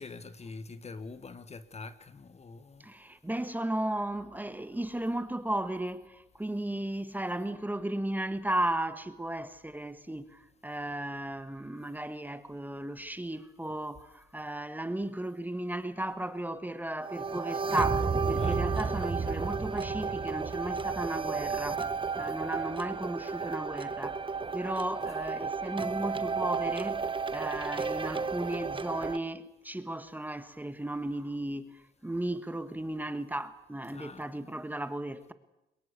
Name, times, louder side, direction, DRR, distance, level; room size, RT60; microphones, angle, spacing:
voice 1, 0.0-2.9 18.3-19.3 33.9-34.3, left 4 dB, 30° left, 1.3 m, -45 dB
voice 2, 2.8-21.9 22.2-24.2 24.5-35.3, right 1 dB, 10° right, 1.5 m, -35 dB
sound 1, 17.0-29.2, right 4 dB, 25° right, 1.0 m, -32 dB
22.0 x 22.0 x 8.3 m
cardioid pair, 90°, 20 cm